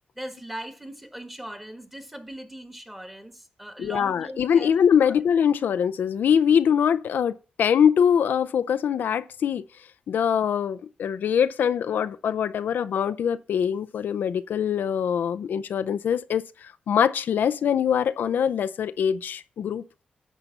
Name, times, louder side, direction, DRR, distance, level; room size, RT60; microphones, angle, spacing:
voice 1, 0.1-4.7 5.0-5.2, right 1 dB, 10° right, 1.5 m, -39 dB
voice 2, 3.8-9.6 10.1-19.8, left 8 dB, 80° left, 0.4 m, -23 dB
9.9 x 4.0 x 6.9 m
cardioid pair, 75°, 3 cm